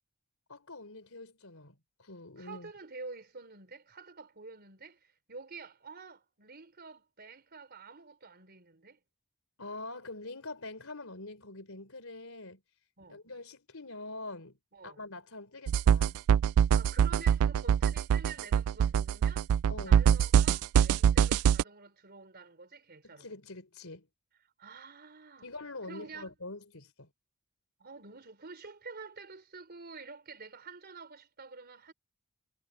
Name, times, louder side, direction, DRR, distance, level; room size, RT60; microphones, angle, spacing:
voice 1, 0.5-2.7 9.6-12.6 13.1-14.6 14.8-16.2 19.7-20.1 23.0-24.1 25.4-27.1, left 2 dB, 70° left, 4.7 m, -45 dB
voice 2, 2.4-9.0 13.0-13.2 14.7-15.0 16.7-19.5 19.9-23.3 24.6-25.5 25.8-26.3 27.8-31.9, right 4 dB, 50° right, 4.2 m, -48 dB
sound 1, 15.7-21.6, right 8 dB, 75° right, 0.3 m, -24 dB
head